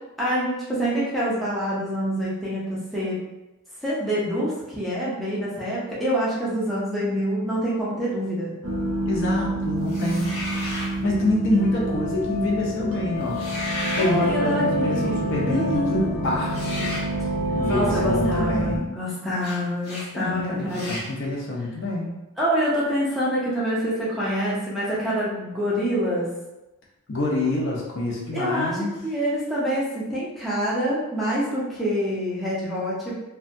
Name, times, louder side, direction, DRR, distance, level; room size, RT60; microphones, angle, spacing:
voice 1, 0.2-3.2 3.8-8.5 14.0-16.1 17.7-20.9 22.4-26.3 28.3-33.1, equal, ahead, -9 dB, 0.5 m, -26 dB
sound 1, 8.6-18.8, right 1 dB, 60° right, 0.5 m, -27 dB
voice 2, 9.1-10.4 11.0-13.4 13.9-17.0 17.5-18.9 20.1-22.2 27.1-28.9, left 1 dB, 55° left, -3 dB, 0.6 m, -26 dB
sound 2, 9.9-10.9 13.2-14.1 16.5-17.1 19.4-19.6 19.8-20.1 20.7-21.1, left 1 dB, 75° left, 1.1 m, -33 dB
2.6 x 2.2 x 2.6 m, 0.99 s
head